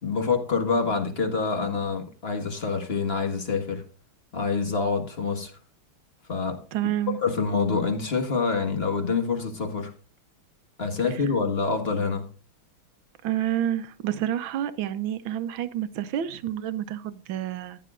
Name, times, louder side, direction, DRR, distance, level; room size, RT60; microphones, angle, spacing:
voice 1, 0.0-3.8 4.3-5.5 6.3-6.6 7.2-9.9 10.8-12.3, left 4 dB, 30° left, 1.6 m, -26 dB
voice 2, 6.7-7.2 13.2-17.8, right 11 dB, 70° right, 1.5 m, -29 dB
15.0 x 10.5 x 2.5 m
omnidirectional pair, 2.4 m